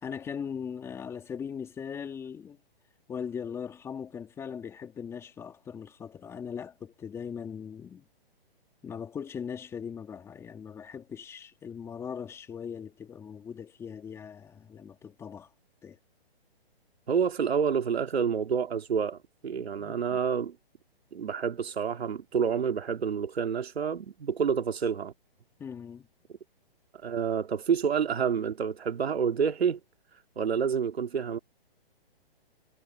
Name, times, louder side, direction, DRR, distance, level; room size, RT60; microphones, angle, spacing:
voice 1, 0.0-2.6 3.1-8.1 8.8-15.5 15.8-16.0 19.8-20.2 25.6-26.1, left 7 dB, 10° left, 2.3 m, -39 dB
voice 2, 17.1-20.6 21.1-25.1 27.0-29.8 30.4-31.4, right 7 dB, 80° right, 2.9 m, -28 dB
hypercardioid pair, 165°, 31 cm